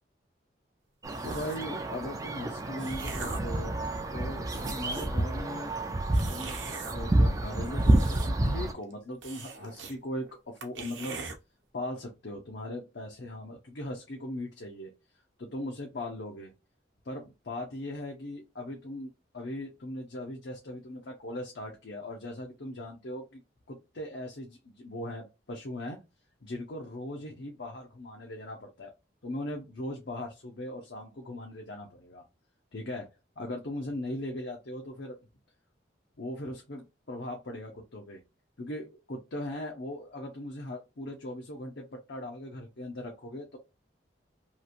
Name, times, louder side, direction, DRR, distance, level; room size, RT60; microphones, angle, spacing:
sound 1, 1.0-8.7, right 1 dB, 20° right, 0.4 m, -29 dB
sound 2, 1.1-1.7 2.4-3.6 4.1-4.2 4.4-5.2 6.1-7.0 7.6-8.5 8.8-8.9 9.2-10.0 10.3-10.4 10.6-11.4, right 4 dB, 90° right, 0.8 m, -41 dB
voice 1, 1.2-3.8 4.1-5.7 6.3-6.6 6.9-11.2 11.7-14.9 15.4-16.5 17.0-23.4 23.7-26.0 26.4-28.9 29.2-32.2 32.7-33.1 33.4-35.2 36.2-38.2 38.6-43.6, left 1 dB, 65° left, 1 dB, 0.7 m, -39 dB
3.0 x 2.5 x 2.5 m, 0.26 s
head